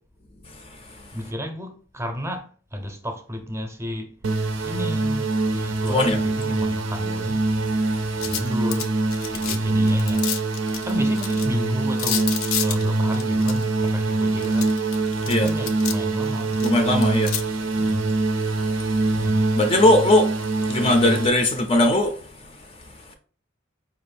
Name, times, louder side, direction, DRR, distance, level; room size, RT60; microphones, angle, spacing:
voice 1, 0.5-1.0 5.9-6.2 8.0-8.3 15.3-15.5 16.6-17.3 17.6-17.7 18.6-19.0 19.6-20.3 20.6-22.2, left 1 dB, 30° left, 0.4 m, -20 dB
voice 2, 1.1-4.2 4.6-7.4 8.2-8.9 9.3-10.3 10.8-14.8 15.4-16.8 17.8-18.1 19.1-19.4, equal, 15° right, 0.6 m, -33 dB
sound 1, 4.2-21.3, right 2 dB, 70° right, 0.5 m, -24 dB
sound 2, 8.2-9.6 9.9-11.5 12.0-13.9 14.4-16.0 16.2-17.4, left 9 dB, 80° left, 0.5 m, -29 dB
4.6 x 2.5 x 3.2 m
head